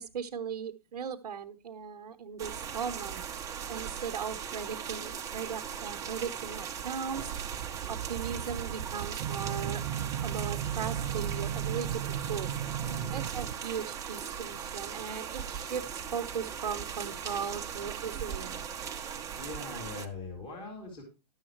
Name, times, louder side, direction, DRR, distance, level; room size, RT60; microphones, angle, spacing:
voice 1, 0.0-7.3 7.9-9.8 10.2-12.0 12.3-12.5 13.1-18.6, right 7 dB, 70° right, 6 dB, 0.9 m, -38 dB
sound 1, 2.4-20.1, right 7 dB, 15° right, 0.8 m, -39 dB
sound 2, 7.3-13.6, right 9 dB, 45° right, 0.6 m, -35 dB
voice 2, 12.8-13.1 19.4-21.0, left 3 dB, 25° left, 1 dB, 2.6 m, -41 dB
11.5 x 7.2 x 4.5 m, 0.29 s
hypercardioid pair, 135°, 21 cm